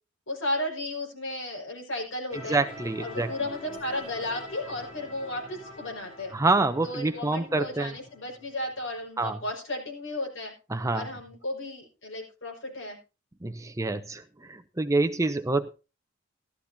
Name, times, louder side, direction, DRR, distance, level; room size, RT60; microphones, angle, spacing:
voice 1, 0.3-2.6 3.0-6.3 6.8-10.5 10.9-13.0, left 1 dB, 65° left, 0 dB, 5.4 m, -34 dB
sound 1, 2.3-9.1, left 1 dB, 25° left, 7.8 m, -45 dB
voice 2, 2.5-3.3 6.3-7.9 9.2-9.4 10.7-11.1 13.4-15.7, right 3 dB, 15° right, 8 dB, 0.6 m, -27 dB
15.5 x 13.0 x 2.7 m, 0.31 s
head